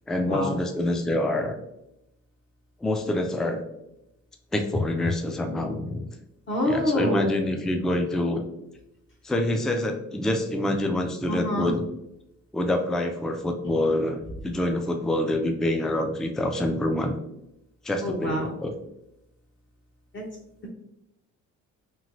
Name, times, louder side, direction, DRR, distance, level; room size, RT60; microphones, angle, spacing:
voice 1, 0.1-1.6 2.8-3.6 4.5-6.0 6.6-8.4 9.2-11.8 12.5-17.1 17.8-18.7, left 1 dB, ahead, 4 dB, 0.3 m, -26 dB
voice 2, 6.5-7.4 11.3-11.7 18.0-18.5 20.1-20.2, left 1 dB, 40° left, -1 dB, 0.6 m, -26 dB
3.1 x 2.8 x 2.6 m, 0.84 s
cardioid pair, 90°, 30 cm